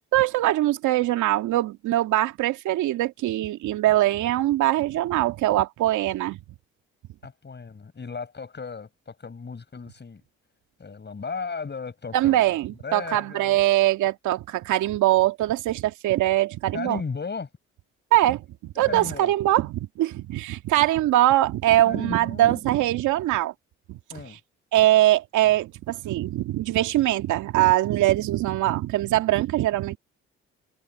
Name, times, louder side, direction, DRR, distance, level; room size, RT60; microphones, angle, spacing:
voice 1, 0.1-6.4 12.1-17.0 18.1-23.5 23.9-24.0 24.7-30.0, right 15 dB, 75° right, 2.4 m, -22 dB
voice 2, 7.2-10.2 10.8-12.6 12.8-13.6 16.7-17.5 18.9-19.3 21.8-22.6 24.1-24.4, left 5 dB, 35° left, 7.2 m, -35 dB
supercardioid pair, 60°, 30 cm